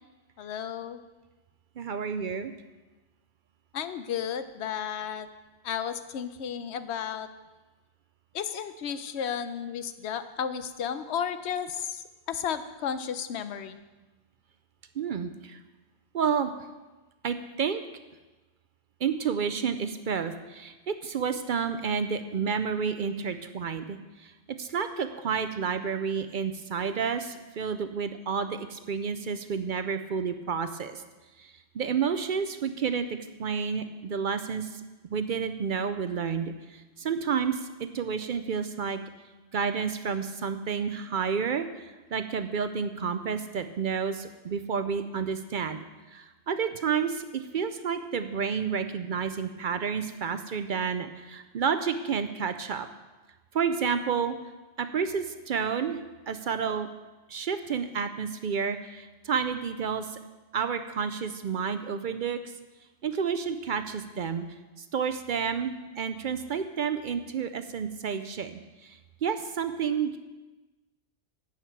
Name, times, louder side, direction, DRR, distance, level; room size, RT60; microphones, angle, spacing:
voice 1, 0.4-1.0 3.7-5.3 5.6-7.3 8.3-13.8, left 8 dB, 80° left, 11 dB, 0.9 m, -33 dB
voice 2, 1.8-2.5 15.0-15.6 16.1-16.5 17.2-17.8 19.0-24.3 24.6-31.0 31.4-34.7 35.1-39.0 39.5-45.8 46.1-52.9 53.5-54.4 54.8-56.0 56.3-56.9 57.3-60.2 60.5-62.4 63.0-64.4 64.8-70.2, right 6 dB, 60° right, 9 dB, 0.6 m, -30 dB
11.5 x 8.6 x 4.5 m, 1.2 s
omnidirectional pair, 1.1 m